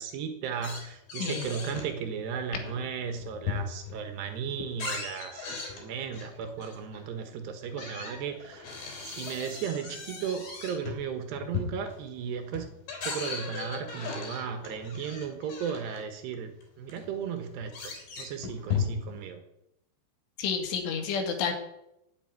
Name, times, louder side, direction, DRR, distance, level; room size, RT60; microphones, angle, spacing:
voice 1, 0.0-5.5 5.7-8.7 9.0-12.7 13.0-19.4, right 7 dB, 70° right, 7 dB, 3.2 m, -35 dB
sound 1, 0.6-1.9 2.3-4.0 4.4-7.0 7.6-16.0 16.6-16.7 16.9-19.2, left 5 dB, 55° left, 5.6 m, -37 dB
voice 2, 20.4-21.5, left 6 dB, 80° left, 5 dB, 4.5 m, -30 dB
12.0 x 8.8 x 9.5 m, 0.84 s
omnidirectional pair, 5.5 m